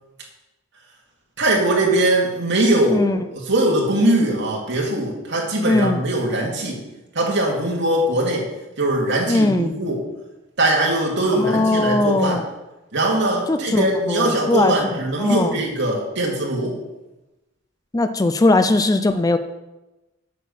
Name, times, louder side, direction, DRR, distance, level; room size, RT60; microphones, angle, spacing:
voice 1, 1.4-3.0 3.3-6.8 7.1-8.5 8.8-10.0 10.6-12.4 12.9-16.8, right 1 dB, 65° right, -2 dB, 2.3 m, -21 dB
voice 2, 5.6-6.0 9.3-9.7 11.3-12.4 13.5-15.6 17.9-19.4, left 2 dB, 20° left, 9 dB, 0.4 m, -20 dB
8.1 x 6.6 x 5.5 m, 1.0 s
head